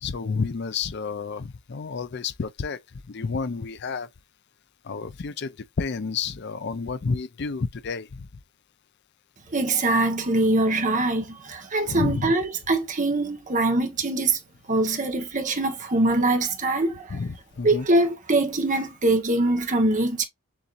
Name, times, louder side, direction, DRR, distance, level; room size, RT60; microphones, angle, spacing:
voice 1, 0.0-4.1 4.8-8.3 11.9-12.3 17.1-17.9, left 4 dB, 50° left, 0.5 m, -30 dB
voice 2, 9.5-14.4 14.7-17.2 17.6-20.3, right 2 dB, 35° right, 1.0 m, -23 dB
7.1 x 2.7 x 2.5 m
head